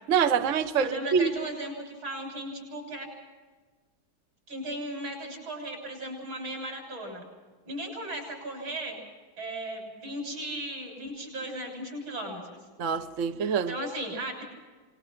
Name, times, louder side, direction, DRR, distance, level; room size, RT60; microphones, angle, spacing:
voice 1, 0.1-1.3 12.8-13.7, right 6 dB, 50° right, 8 dB, 1.1 m, -25 dB
voice 2, 0.8-3.1 4.5-7.3 7.7-9.0 9.4-12.6 13.7-14.4, right 1 dB, 70° right, 2 dB, 7.9 m, -36 dB
28.0 x 21.0 x 5.9 m, 1.3 s
omnidirectional pair, 2.2 m